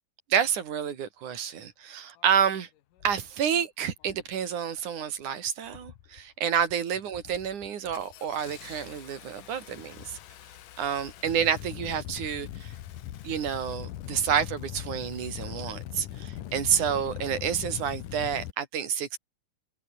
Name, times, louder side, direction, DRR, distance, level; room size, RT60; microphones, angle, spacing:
voice 1, 0.3-2.7 3.0-10.2 10.8-12.7 13.2-19.2, right 8 dB, 60° right, 3.7 m, -29 dB
Engine starting, 2.2-2.3 3.0-3.3 4.0-4.3 4.7-5.2 5.7-6.2 6.6-6.8 7.1-18.5, left 12 dB, 70° left, 2.8 m, -41 dB
open air
omnidirectional pair, 4.0 m